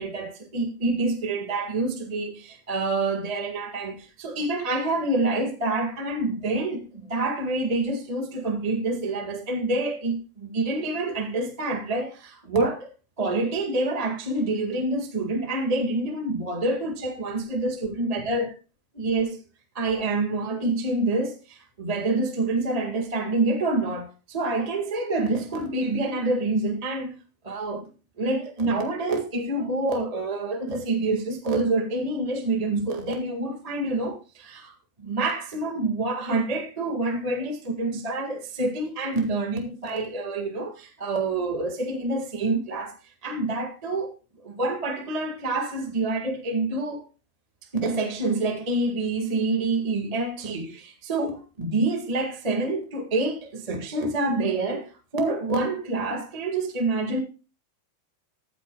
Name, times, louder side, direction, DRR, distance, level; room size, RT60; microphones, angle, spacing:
voice 1, 0.0-12.9 13.2-18.5 18.9-19.4 19.7-27.1 27.4-27.9 28.2-43.0 43.2-44.1 44.4-47.0 47.7-57.2, right 2 dB, 25° right, 0.8 m, -27 dB
15.0 x 10.0 x 2.3 m
omnidirectional pair, 3.8 m